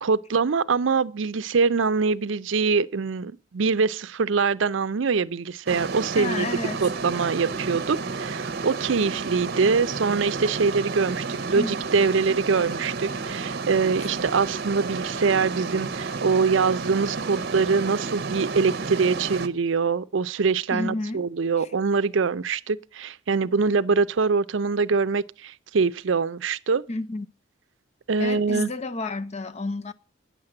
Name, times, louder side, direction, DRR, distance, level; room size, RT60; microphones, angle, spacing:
voice 1, 0.0-6.5 6.8-26.8 28.1-28.7, right 5 dB, 70° right, 0.5 m, -24 dB
sound 1, 5.7-19.5, right 4 dB, 55° right, 0.9 m, -31 dB
voice 2, 6.2-6.8 11.6-11.8 20.7-21.2 26.9-27.3 28.2-29.9, left 2 dB, 35° left, 0.6 m, -30 dB
9.4 x 7.4 x 7.6 m
head